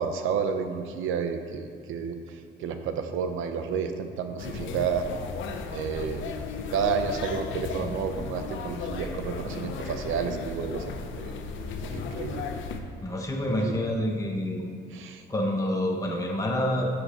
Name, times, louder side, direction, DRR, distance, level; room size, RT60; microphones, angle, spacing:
voice 1, 0.0-5.1 5.7-6.3 6.7-10.8 11.2-11.3 11.9-12.5 13.6-13.8 14.9-15.2, right 6 dB, 85° right, 7 dB, 0.7 m, -30 dB
sound 1, 4.4-12.8, left 4 dB, 75° left, 0.8 m, -35 dB
voice 2, 13.0-14.7 15.3-16.9, left 1 dB, 15° left, -1 dB, 1.0 m, -27 dB
7.9 x 7.3 x 4.4 m, 2.4 s
cardioid pair, 90°, 20 cm